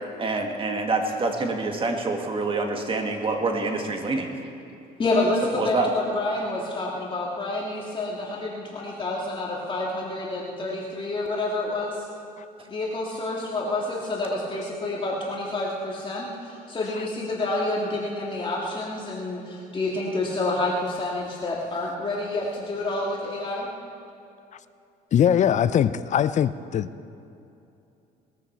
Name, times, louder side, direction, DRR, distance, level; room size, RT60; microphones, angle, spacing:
voice 1, 0.2-4.3 5.6-5.9, right 3 dB, 30° right, 3 dB, 1.9 m, -26 dB
voice 2, 5.0-12.1 12.7-23.7, left 2 dB, 30° left, -3 dB, 2.2 m, -28 dB
voice 3, 25.1-26.9, left 9 dB, 45° left, 15 dB, 0.5 m, -21 dB
20.5 x 14.0 x 4.6 m, 2.7 s
cardioid pair, 110°, 17 cm